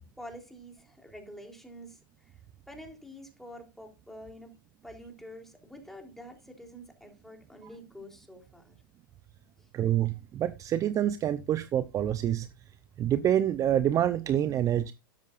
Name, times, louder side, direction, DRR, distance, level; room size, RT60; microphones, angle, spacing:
voice 1, 0.2-2.4 2.7-4.5 4.8-8.7 9.6-9.7, equal, 5° left, 3.6 m, -47 dB
voice 2, 9.7-12.5 13.0-14.9, right 11 dB, 30° right, 0.7 m, -27 dB
12.5 x 10.5 x 2.5 m
hypercardioid pair, 110°, 11 cm